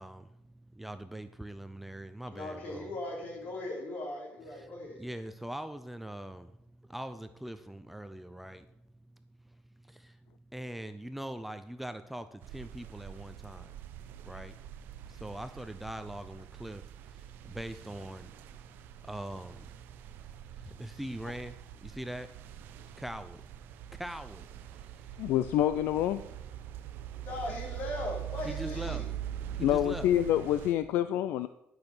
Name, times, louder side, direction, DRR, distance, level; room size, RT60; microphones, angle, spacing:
voice 1, 0.0-2.9 4.5-4.7 5.0-8.7 9.4-10.2 10.5-13.7 14.2-14.6 15.1-23.4 23.9-25.3 28.4-29.0 29.5-30.1, right 1 dB, 5° right, 10 dB, 0.4 m, -43 dB
voice 2, 2.3-5.0 27.2-29.1, left 1 dB, 55° left, 0 dB, 3.3 m, -38 dB
sound 1, 12.4-30.7, right 11 dB, 70° right, 0.7 m, -44 dB
voice 3, 25.2-26.2 29.6-31.5, left 12 dB, 75° left, 12 dB, 0.4 m, -27 dB
11.5 x 6.2 x 6.6 m, 0.84 s
cardioid pair, 155°, 4 cm